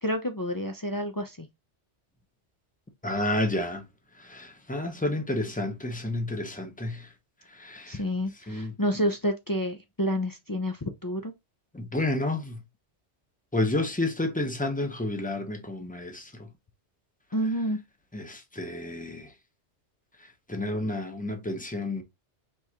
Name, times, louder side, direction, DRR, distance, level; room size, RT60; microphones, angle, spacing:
voice 1, 0.0-1.5 7.9-11.3 17.3-17.8, equal, 35° left, 0.3 m, -29 dB
voice 2, 3.0-3.8 4.3-7.1 7.6-8.0 8.5-8.7 11.7-12.6 13.5-16.3 18.1-19.3 20.5-22.0, left 2 dB, 10° left, 0.7 m, -30 dB
4.6 x 3.5 x 2.8 m
omnidirectional pair, 1.2 m